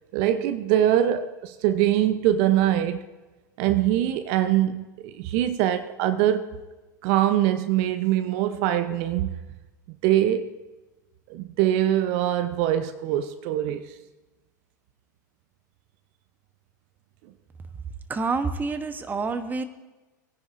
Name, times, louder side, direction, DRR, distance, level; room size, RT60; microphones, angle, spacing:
voice 1, 0.1-3.0 3.6-6.5 7.0-9.4 9.9-10.5 11.3-13.9, right 12 dB, 55° right, 0.8 m, -23 dB
voice 2, 18.1-19.6, right 4 dB, 20° right, 1.0 m, -27 dB
20.5 x 10.0 x 2.6 m
hypercardioid pair, 95°, 10 cm